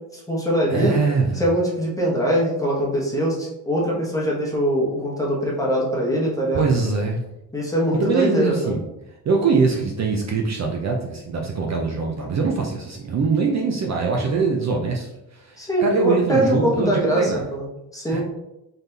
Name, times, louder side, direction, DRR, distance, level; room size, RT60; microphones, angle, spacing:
voice 1, 0.1-0.9 1.4-6.6 7.5-8.7 14.2-14.4 15.6-17.7 17.9-18.2, equal, 10° left, -4 dB, 1.0 m, -22 dB
voice 2, 0.7-1.5 6.5-7.2 7.9-8.8 9.2-17.4 18.1-18.2, right 4 dB, 45° right, 0 dB, 0.5 m, -23 dB
4.0 x 3.4 x 2.7 m, 0.90 s
cardioid pair, 140°, 39 cm